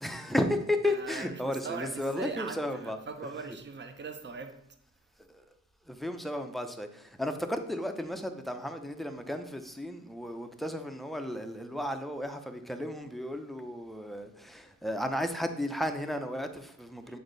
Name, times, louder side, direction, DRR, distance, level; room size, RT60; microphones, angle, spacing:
voice 1, 0.0-3.0 5.3-5.4 5.9-17.2, left 1 dB, ahead, 6 dB, 0.6 m, -34 dB
voice 2, 0.8-4.6 17.0-17.2, right 4 dB, 35° right, 7 dB, 0.8 m, -40 dB
8.1 x 4.4 x 3.9 m, 0.71 s
wide cardioid pair, 130°, 30 cm